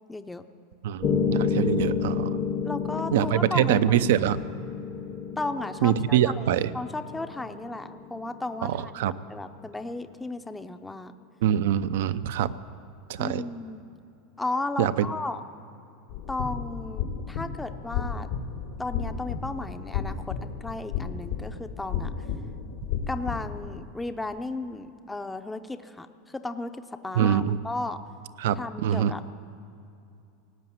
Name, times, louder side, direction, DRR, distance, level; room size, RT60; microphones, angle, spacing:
voice 1, 0.1-0.5 2.6-4.1 5.4-6.5 6.7-8.9 9.3-11.1 13.2-13.8 14.4-15.4 16.3-18.3 18.8-22.1 23.1-28.0 28.6-29.3, left 2 dB, 10° left, 9 dB, 0.5 m, -34 dB
voice 2, 0.8-2.4 3.1-4.4 5.8-6.7 8.6-9.1 11.4-12.5 13.1-13.4 14.8-15.1 27.1-27.6 28.4-29.1, right 10 dB, 75° right, 14 dB, 0.5 m, -24 dB
Piano, 1.0-9.1, left 6 dB, 35° left, 0.8 m, -30 dB
sound 1, 16.1-23.8, left 7 dB, 80° left, 1.7 m, -33 dB
18.0 x 7.9 x 9.3 m, 2.6 s
supercardioid pair, 135°, 0 cm